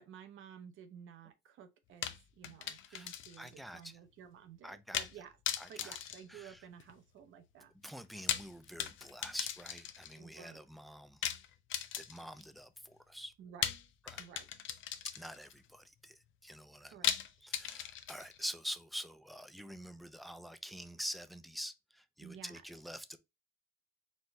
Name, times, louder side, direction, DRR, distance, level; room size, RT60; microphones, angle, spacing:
voice 1, 0.0-5.4 5.7-7.7 10.2-10.6 13.4-13.7 14.2-14.5 16.8-17.1 22.2-22.6, right 8 dB, 80° right, 0.8 m, -53 dB
sound 1, 2.0-3.5 3.8-3.9 4.9-5.2 5.5-7.0 8.0-10.2 11.2-12.4 13.6-15.5 17.0-18.4, left 10 dB, 80° left, 0.6 m, -38 dB
voice 2, 2.9-3.9 4.6-5.1 5.6-6.0 6.3-6.6 7.8-11.3 12.0-13.3 14.0-14.3 15.2-17.0 17.4-23.2, equal, ahead, 0.6 m, -46 dB
4.3 x 3.1 x 3.3 m
cardioid pair, 90°, 20 cm